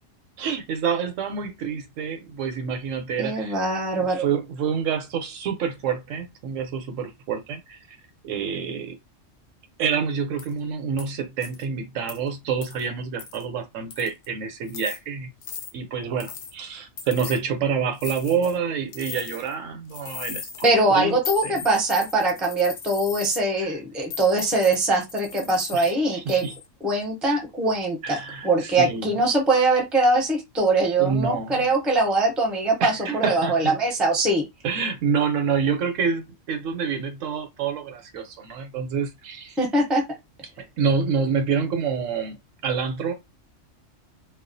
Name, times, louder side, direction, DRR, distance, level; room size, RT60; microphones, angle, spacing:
voice 1, 0.4-3.6 4.0-7.8 8.2-9.0 9.8-15.3 15.7-20.5 20.9-21.6 23.6-23.7 25.7-26.5 28.0-29.1 31.0-31.7 32.8-33.8 34.6-39.6 40.8-42.4 42.6-43.1, right 6 dB, 80° right, 0.9 m, -27 dB
voice 2, 3.2-4.3 20.6-26.5 26.8-28.2 28.4-34.4 39.6-40.0, right 2 dB, ahead, 0.4 m, -22 dB
sound 1, 10.4-10.5 11.0-11.1 11.4-11.6 12.1-12.2 12.6-12.9 13.2-13.4 13.9-14.3 14.7-15.0 15.4-15.7 16.2-16.5 17.0-17.4 18.0-18.6 18.9-19.5 19.9-20.7 21.2-23.4 24.1-25.9 26.3-26.6, left 7 dB, 60° left, 0.6 m, -37 dB
2.3 x 2.1 x 2.6 m
omnidirectional pair, 1.3 m